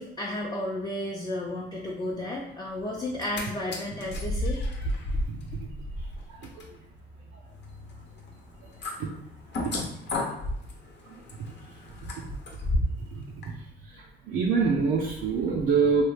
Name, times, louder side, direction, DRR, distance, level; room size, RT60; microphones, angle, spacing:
voice 1, 0.0-4.6, left 1 dB, 20° left, -3 dB, 0.5 m, -33 dB
sound 1, 3.0-3.4 3.7-13.1 13.4-13.5, left 1 dB, 60° left, 0.8 m, -33 dB
voice 2, 5.3-5.7 6.4-6.7 9.0-9.1 11.4-11.5 13.1-13.2 13.9-16.1, right 5 dB, 75° right, -2 dB, 0.5 m, -26 dB
3.0 x 2.3 x 3.2 m, 0.75 s
cardioid pair, 90°, 20 cm